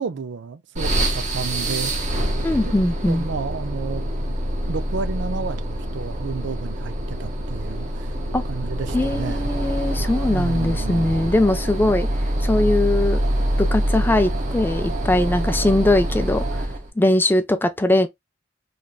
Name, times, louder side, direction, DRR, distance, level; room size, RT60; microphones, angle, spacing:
voice 1, 0.0-1.9 2.7-2.8 3.0-4.0 4.7-8.1 8.4-9.5 10.3-11.3, right 5 dB, 65° right, 0.4 m, -31 dB
sound 1, 0.8-16.9, right 1 dB, 40° right, 0.8 m, -25 dB
voice 2, 2.4-3.3 8.3-8.4 8.9-12.1 12.4-13.2 13.6-16.5 17.0-18.1, left 1 dB, 10° left, 0.4 m, -20 dB
3.2 x 2.5 x 2.3 m
head